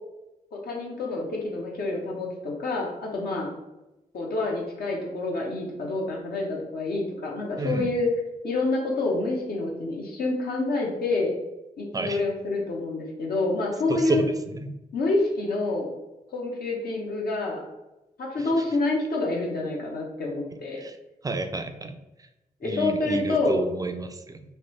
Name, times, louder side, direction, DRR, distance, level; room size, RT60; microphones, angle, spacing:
voice 1, 0.5-3.6 4.1-8.1 8.4-11.3 11.8-14.2 14.9-15.9 16.3-17.6 18.2-20.8 22.6-23.6, left 2 dB, 70° left, -2 dB, 0.8 m, -27 dB
voice 2, 7.6-7.9 11.9-12.2 13.9-14.3 14.5-14.7 20.8-20.9 21.2-22.0 22.6-24.4, right 3 dB, 20° right, 8 dB, 0.3 m, -29 dB
3.1 x 2.0 x 3.0 m, 0.97 s
cardioid pair, 55°, 16 cm